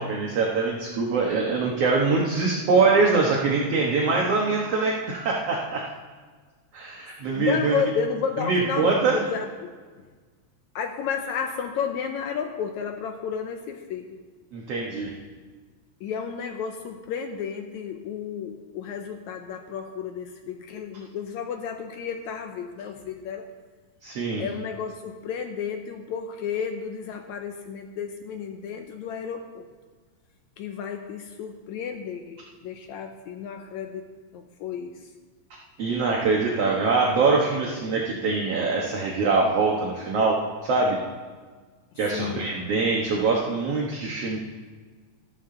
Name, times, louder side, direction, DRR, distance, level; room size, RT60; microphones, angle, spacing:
voice 1, 0.0-5.8 6.7-7.7 8.4-9.2 14.5-15.1 24.0-24.4 35.8-40.4 40.6-41.0 42.0-44.4, right 4 dB, 60° right, -2 dB, 1.9 m, -23 dB
voice 2, 7.3-9.7 10.8-14.2 16.0-23.5 24.4-29.7 30.6-35.1 42.1-42.5, left 7 dB, 75° left, 5 dB, 1.8 m, -32 dB
14.0 x 13.0 x 3.8 m, 1.5 s
omnidirectional pair, 3.7 m